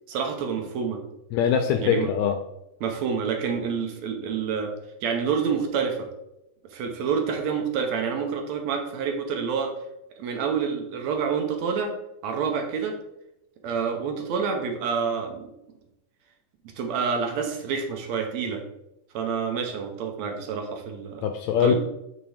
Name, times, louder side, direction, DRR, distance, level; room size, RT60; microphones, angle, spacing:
voice 1, 0.1-1.0 1.8-2.1 2.8-4.7 5.0-6.0 6.7-9.7 10.2-11.9 12.2-13.0 13.6-15.5 16.8-18.6 19.1-21.2 21.6-21.7, right 6 dB, 70° right, 4 dB, 2.0 m, -28 dB
voice 2, 1.3-2.4 21.2-21.7, left 8 dB, 80° left, 7 dB, 1.6 m, -22 dB
8.6 x 4.9 x 3.4 m, 0.87 s
omnidirectional pair, 3.5 m